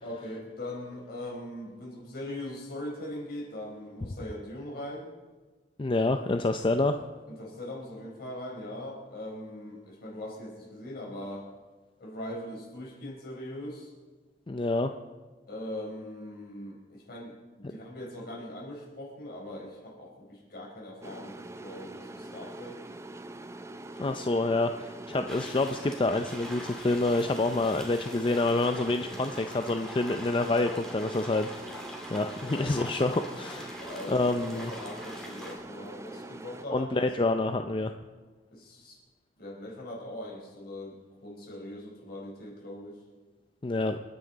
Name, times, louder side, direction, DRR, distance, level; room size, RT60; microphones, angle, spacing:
voice 1, 0.0-5.1 7.3-11.5 12.0-13.9 15.5-22.8 32.4-32.7 33.8-37.1 38.5-39.0 39.4-43.0, left 1 dB, 60° left, -1 dB, 4.3 m, -41 dB
voice 2, 5.8-7.0 14.5-14.9 24.0-33.8 34.1-34.7 36.7-37.9 43.6-44.0, left 2 dB, 30° left, 7 dB, 0.5 m, -27 dB
sound 1, 21.0-36.7, right 2 dB, 15° right, 0.5 m, -44 dB
sound 2, 25.3-35.6, equal, 5° left, 2.5 m, -44 dB
28.5 x 9.5 x 4.0 m, 1.3 s
head